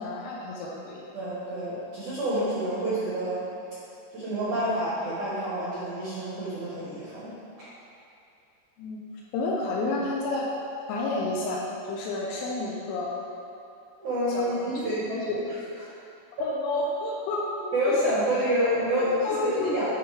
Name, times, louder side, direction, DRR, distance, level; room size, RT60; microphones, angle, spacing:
voice 1, 0.0-1.0 8.8-9.0 9.3-10.5 10.9-13.1 14.3-14.7 15.1-15.4 16.4-17.7 19.2-19.7, left 2 dB, 80° left, -4 dB, 3.0 m, -30 dB
voice 2, 1.1-3.4 4.1-7.4 14.0-15.3 17.7-19.8, equal, 90° right, -10 dB, 1.7 m, -28 dB
9.9 x 5.7 x 3.4 m, 2.6 s
omnidirectional pair, 5.8 m